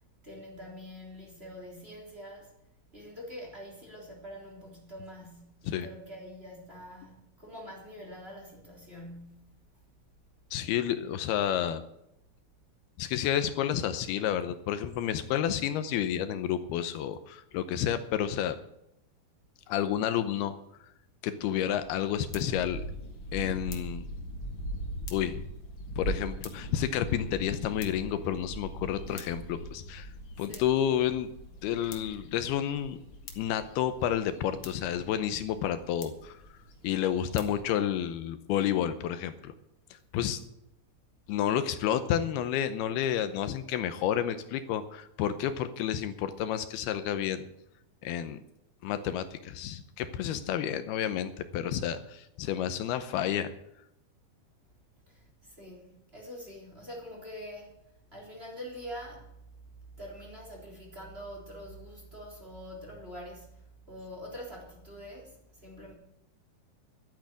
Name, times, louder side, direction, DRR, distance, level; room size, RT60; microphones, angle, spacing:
voice 1, 0.2-2.5 2.9-9.5 29.0-29.3 30.5-30.7 55.1-57.7 58.1-59.4 60.0-65.9, equal, 15° right, 3.6 m, -45 dB
voice 2, 10.5-11.8 13.0-18.6 19.7-20.6 21.2-22.8 23.3-24.0 25.1-25.4 26.0-30.1 30.4-31.3 31.6-33.0 33.4-36.4 36.8-39.5 40.1-40.4 41.3-47.5 48.0-48.4 48.8-53.5, left 10 dB, 80° left, 2.7 m, -30 dB
sound 1, 21.7-37.6, equal, 45° left, 1.9 m, -41 dB
12.5 x 9.1 x 8.4 m
omnidirectional pair, 4.6 m